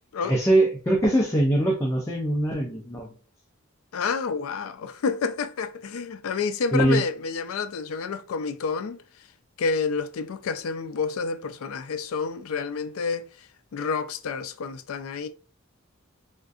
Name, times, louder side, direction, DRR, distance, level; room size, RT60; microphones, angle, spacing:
voice 1, 0.2-3.1 6.7-7.0, right 1 dB, 15° left, 0.5 m, -22 dB
voice 2, 3.9-9.0 9.6-13.5 13.7-15.3, left 5 dB, 80° left, 0.4 m, -29 dB
3.5 x 2.5 x 2.4 m
head